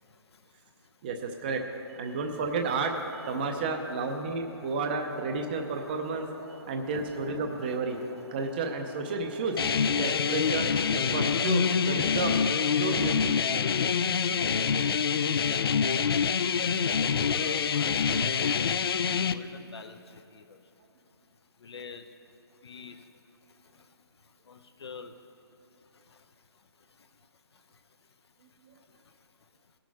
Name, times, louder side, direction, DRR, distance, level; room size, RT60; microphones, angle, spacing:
voice 1, 1.0-1.6 1.9-6.3 6.7-8.0 8.3-9.6 9.9-12.4 12.8-13.4, right 4 dB, 20° right, 4 dB, 0.6 m, -31 dB
Rain from Indoors - Perfect loop, 4.5-12.2, right 1 dB, 75° right, 1.9 m, -51 dB
sound 1, 9.6-19.3, left 6 dB, 60° left, 0.4 m, -26 dB
voice 2, 16.5-18.6 19.3-20.0 20.3-20.6 21.6-22.0 22.6-23.0 24.5-25.1, left 5 dB, 80° left, 6 dB, 0.8 m, -45 dB
17.5 x 6.3 x 4.7 m, 2.8 s
hypercardioid pair, 165°, 14 cm